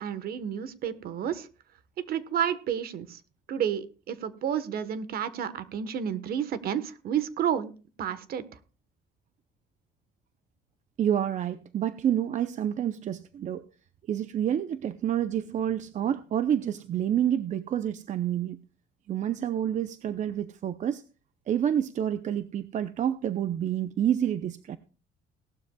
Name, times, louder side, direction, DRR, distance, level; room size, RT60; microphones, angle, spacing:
voice 1, 0.0-1.5 2.0-3.2 3.5-7.7 8.0-8.4, right 9 dB, 60° right, 1.2 m, -30 dB
voice 2, 11.0-13.6 14.1-18.6 19.1-21.0 21.5-24.8, right 10 dB, 45° right, 0.6 m, -28 dB
18.0 x 12.5 x 2.3 m
cardioid pair, 110°, 17 cm